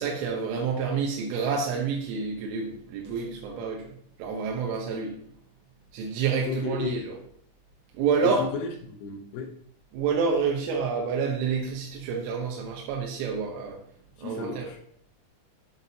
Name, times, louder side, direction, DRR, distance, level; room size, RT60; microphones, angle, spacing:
voice 1, 0.0-3.9 4.2-5.2 5.9-7.0 8.0-8.5 9.9-13.8 14.2-14.7, right 5 dB, 90° right, -1 dB, 3.5 m, -28 dB
voice 2, 6.5-7.0 8.2-9.5 14.2-14.8, left 4 dB, 75° left, 0 dB, 2.5 m, -33 dB
8.9 x 7.9 x 2.8 m, 0.64 s
omnidirectional pair, 5.5 m